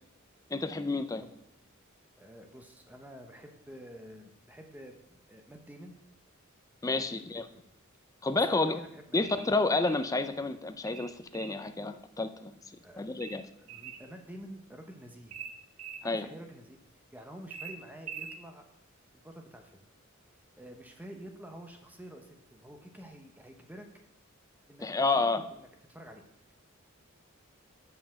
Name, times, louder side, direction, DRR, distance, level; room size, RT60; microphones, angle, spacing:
voice 1, 0.5-1.2 6.8-7.4 8.2-8.8 9.1-12.6 13.0-13.4 16.0-16.3 24.8-25.4, left 3 dB, 15° left, 10 dB, 0.4 m, -30 dB
voice 2, 2.2-5.9 7.1-7.7 8.5-9.2 12.8-13.3 13.6-15.4 16.0-16.8 17.1-18.7 19.2-19.8 20.5-23.9 24.7-26.5, equal, 10° right, 4 dB, 0.9 m, -49 dB
sound 1, 9.2-10.1 10.9-11.6 13.2-14.1 15.3-16.1 17.5-18.4, right 6 dB, 80° right, 0.7 m, -44 dB
7.0 x 5.7 x 6.4 m, 0.76 s
head